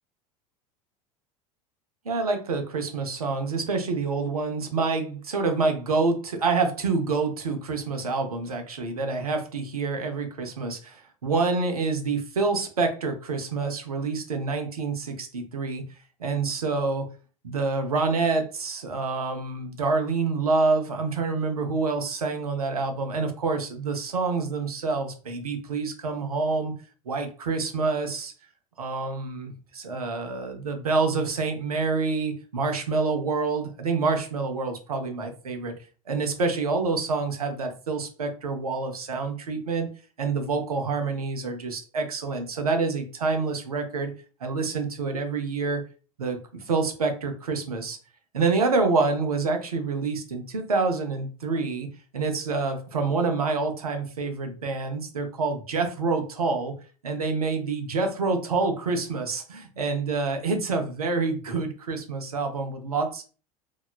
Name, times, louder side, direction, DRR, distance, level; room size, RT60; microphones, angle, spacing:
voice 1, 2.1-15.8 16.2-17.1 17.4-26.7 27.1-28.3 28.8-35.7 36.1-39.9 40.2-44.1 44.4-45.8 46.2-46.4 46.7-48.0 48.3-51.9 52.1-56.7 57.0-63.2, right 4 dB, 80° right, 5 dB, 0.5 m, -27 dB
2.8 x 2.2 x 2.3 m, 0.37 s
figure-of-eight pair, 75°, 19 cm